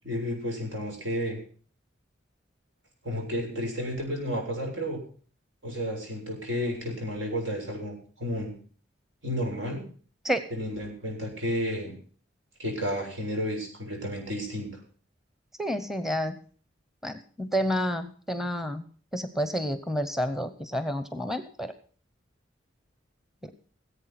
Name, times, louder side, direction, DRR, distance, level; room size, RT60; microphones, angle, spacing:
voice 1, 0.0-1.4 3.0-5.0 5.6-8.5 9.2-9.8 10.5-11.9 12.6-14.7, equal, 80° right, 1 dB, 7.1 m, -32 dB
voice 2, 15.6-16.4 17.0-18.8 19.1-21.7 23.4-23.5, equal, ahead, 11 dB, 0.9 m, -29 dB
18.0 x 8.4 x 5.9 m, 0.43 s
head